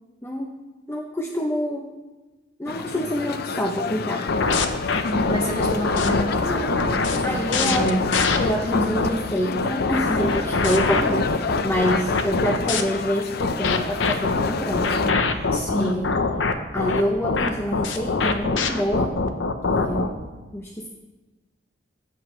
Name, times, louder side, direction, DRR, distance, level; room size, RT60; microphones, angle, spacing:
voice 1, 0.2-0.5 0.9-1.9 2.6-4.3 5.1-5.3 7.2-8.0 8.4-16.1 16.7-19.2 19.6-20.2 20.5-20.9, equal, 15° left, 1 dB, 0.7 m, -27 dB
sound 1, 2.7-15.1, left 5 dB, 55° left, 0.5 m, -31 dB
sound 2, 4.3-9.1 9.6-12.8 13.4-20.1, left 3 dB, 80° left, 0.8 m, -23 dB
voice 2, 5.0-8.0 8.7-8.9 15.5-16.0, equal, 35° left, -3 dB, 2.7 m, -27 dB
15.5 x 8.1 x 3.1 m, 1.2 s
head